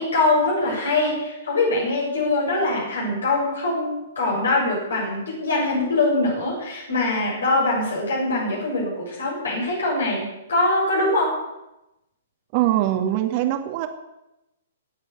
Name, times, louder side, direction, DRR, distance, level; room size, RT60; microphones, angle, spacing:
voice 1, 0.0-11.4, left 2 dB, 70° left, -4 dB, 7.2 m, -23 dB
voice 2, 12.5-13.9, right 13 dB, 40° right, 6 dB, 2.0 m, -22 dB
17.5 x 8.2 x 8.4 m, 0.93 s
figure-of-eight pair, 115°, 0 cm